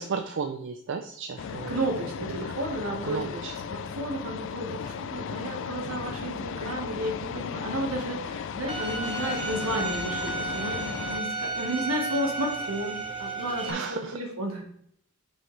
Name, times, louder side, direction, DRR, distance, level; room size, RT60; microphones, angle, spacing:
voice 1, 0.0-1.7 3.1-3.5 13.7-14.2, right 5 dB, 55° right, 6 dB, 0.5 m, -33 dB
sound 1, 1.4-11.2, left 7 dB, 60° left, 0.4 m, -36 dB
voice 2, 1.7-3.4 3.7-14.6, right 1 dB, 75° right, 1 dB, 1.6 m, -32 dB
Bowed string instrument, 8.7-13.7, right 3 dB, 25° right, 1.0 m, -33 dB
7.3 x 5.4 x 3.3 m, 0.70 s
head